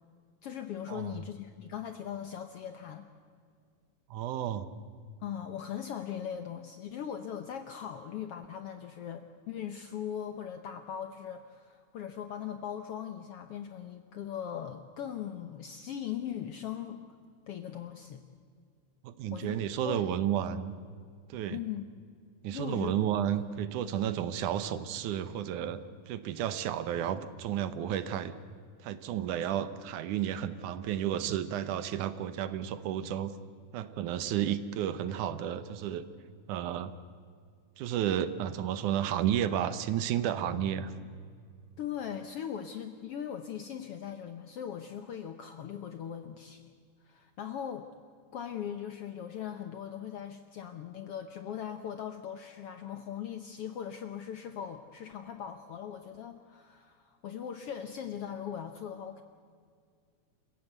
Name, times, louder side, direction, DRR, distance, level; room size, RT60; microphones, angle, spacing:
voice 1, 0.4-3.1 5.2-17.0 17.5-18.2 19.3-20.1 21.5-21.8 22.5-22.9 41.8-46.6 47.0-47.9 48.3-59.2, left 9 dB, 70° left, 8 dB, 1.4 m, -39 dB
voice 2, 4.1-4.7 19.0-20.7 21.3-21.6 22.4-28.3 28.8-33.3 33.7-36.1 36.5-36.9 37.8-40.9, right 10 dB, 75° right, 13 dB, 2.4 m, -32 dB
28.5 x 15.5 x 8.0 m, 2.1 s
omnidirectional pair, 3.7 m